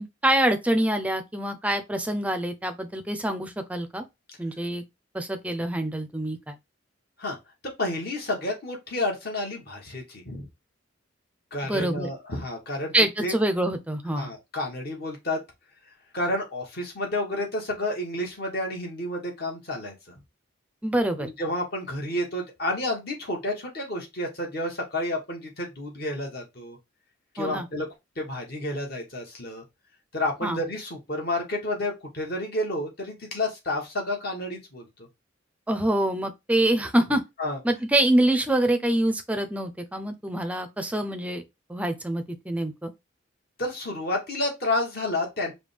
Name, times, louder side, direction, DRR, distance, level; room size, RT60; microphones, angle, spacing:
voice 1, 0.0-4.0 4.4-4.8 5.1-6.6 11.6-12.1 12.9-14.3 20.8-21.3 27.4-27.7 30.4-30.6 35.7-37.2 37.6-41.4 41.7-42.9, right 1 dB, 5° right, 0.5 m, -25 dB
voice 2, 7.8-10.5 11.5-12.9 13.2-13.3 14.1-15.4 16.1-20.1 21.2-26.8 27.3-27.9 28.2-29.6 30.1-35.1 37.4-37.6 43.6-45.5, left 1 dB, 50° left, 1.5 m, -30 dB
5.0 x 2.3 x 3.3 m
head